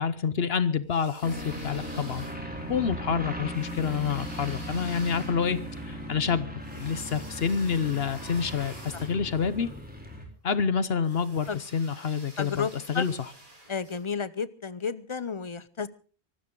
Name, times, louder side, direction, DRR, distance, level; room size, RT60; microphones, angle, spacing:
voice 1, 0.0-2.2 2.7-6.5 6.7-9.7 10.4-13.3, left 6 dB, 65° left, 14 dB, 1.1 m, -28 dB
sound 1, 0.8-2.7 3.5-9.9 11.0-14.0, right 1 dB, 50° right, 4.7 m, -50 dB
sound 2, 1.2-10.2, equal, 10° right, 4.1 m, -38 dB
voice 2, 12.4-13.0 13.7-15.9, left 6 dB, 30° left, 17 dB, 0.7 m, -32 dB
24.0 x 13.0 x 3.9 m, 0.38 s
omnidirectional pair, 1.1 m